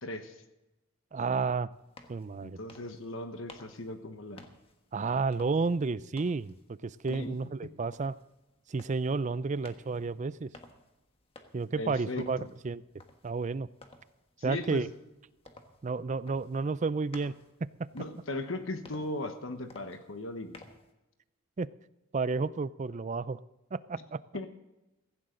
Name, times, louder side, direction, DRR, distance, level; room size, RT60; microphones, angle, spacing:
voice 1, 0.0-0.4 2.4-4.4 7.1-7.4 11.8-12.5 14.4-14.9 17.9-20.6 24.3-24.5, left 2 dB, 65° left, 7 dB, 1.2 m, -38 dB
voice 2, 1.1-1.7 2.1-2.6 4.9-8.2 8.7-10.5 11.5-12.4 12.6-12.8 13.2-13.7 14.4-14.9 15.8-17.3 21.6-21.7 22.1-23.4 23.7-24.2, right 4 dB, 35° right, 17 dB, 0.4 m, -31 dB
sound 1, 1.7-20.9, left 2 dB, 25° left, 1.4 m, -56 dB
16.0 x 15.5 x 3.9 m, 0.99 s
head